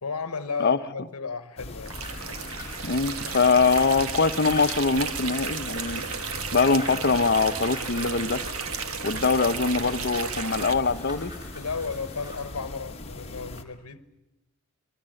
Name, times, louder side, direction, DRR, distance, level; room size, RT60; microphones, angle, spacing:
voice 1, 0.0-2.0 9.0-9.4 11.5-14.0, left 4 dB, 80° left, 1.1 m, -34 dB
sound 1, 1.6-13.6, left 2 dB, 25° left, 1.3 m, -40 dB
sound 2, 1.9-12.5 13.1-13.6, left 1 dB, 20° right, 7.3 m, -45 dB
sound 3, 1.9-10.7, right 6 dB, 70° right, 1.4 m, -34 dB
voice 2, 2.8-6.0 6.5-8.4 9.0-11.3, left 4 dB, 50° left, 0.9 m, -23 dB
28.0 x 22.5 x 7.7 m
head